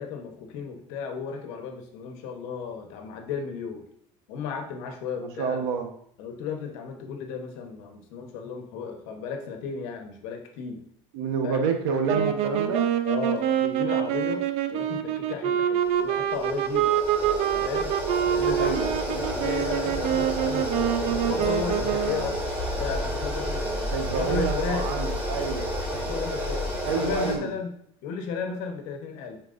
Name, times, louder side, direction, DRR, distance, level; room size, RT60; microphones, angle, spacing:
voice 1, 0.0-3.8 4.3-5.6 6.2-10.8 11.4-11.7 13.0-16.9 17.5-18.0 18.3-22.4 22.8-24.9 25.9-27.7 28.0-29.4, left 6 dB, 80° left, 4 dB, 1.1 m, -34 dB
voice 2, 5.2-6.0 11.1-12.9 18.6-18.9 23.9-25.7 26.8-27.5, right 5 dB, 90° right, 5 dB, 1.1 m, -28 dB
sound 1, 12.1-22.4, right 9 dB, 60° right, 0.7 m, -26 dB
sound 2, 15.7-27.3, equal, 15° right, 2.3 m, -30 dB
9.2 x 4.6 x 2.6 m, 0.69 s
cardioid pair, 140°, 12 cm